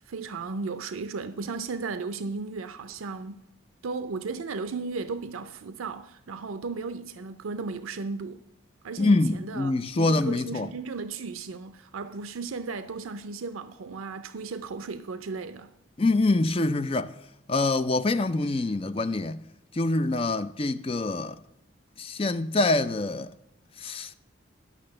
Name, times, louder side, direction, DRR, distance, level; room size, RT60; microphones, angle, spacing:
voice 1, 0.1-3.4 3.8-8.4 8.8-15.7, right 4 dB, 85° right, 0.5 m, -35 dB
voice 2, 9.0-10.7 16.0-17.1 17.5-19.4 19.7-21.4 22.0-23.3 23.8-24.1, left 2 dB, 25° left, 0.4 m, -25 dB
12.0 x 6.1 x 7.7 m
head